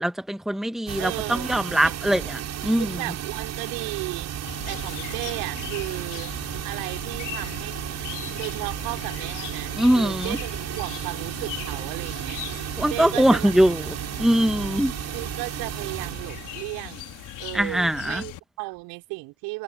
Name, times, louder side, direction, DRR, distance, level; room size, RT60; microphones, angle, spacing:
voice 1, 0.0-3.0 9.8-10.4 12.8-14.9 17.5-18.2, right 1 dB, ahead, 1.7 m, -22 dB
sound 1, 0.9-17.6, right 10 dB, 40° right, 7.9 m, -34 dB
voice 2, 1.0-1.9 2.8-6.3 6.6-7.8 8.3-13.5 15.1-19.6, right 25 dB, 55° right, 6.0 m, -35 dB
Chirp tweet, 4.5-18.4, left 15 dB, 50° left, 5.1 m, -40 dB
figure-of-eight pair, 65°, 40 cm